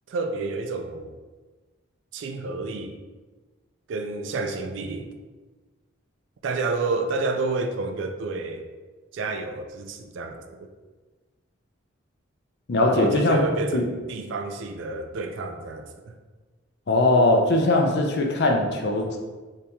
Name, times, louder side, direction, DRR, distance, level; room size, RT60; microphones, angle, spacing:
voice 1, 0.1-1.2 2.1-3.0 3.9-5.1 6.4-8.6 9.1-10.7 12.9-16.1, right 3 dB, 65° right, 6 dB, 0.3 m, -30 dB
voice 2, 12.7-13.4 13.7-13.9 16.9-19.2, left 2 dB, 55° left, 2 dB, 0.5 m, -20 dB
2.8 x 2.8 x 3.5 m, 1.3 s
head